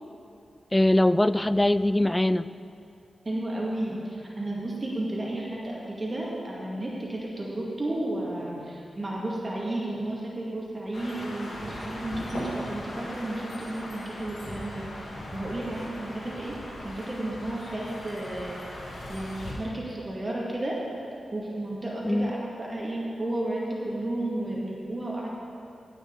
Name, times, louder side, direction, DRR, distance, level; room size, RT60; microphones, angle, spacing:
voice 1, 0.7-2.5 22.0-22.3, left 1 dB, 15° left, 15 dB, 0.3 m, -22 dB
voice 2, 3.2-14.9 15.3-16.5 16.8-18.6 19.1-20.8 21.3-25.3, right 1 dB, 40° right, -5 dB, 2.4 m, -32 dB
sound 1, 10.9-19.5, left 1 dB, 85° left, 2.5 m, -39 dB
16.0 x 6.2 x 4.1 m, 2.6 s
cardioid pair, 55°, 0 cm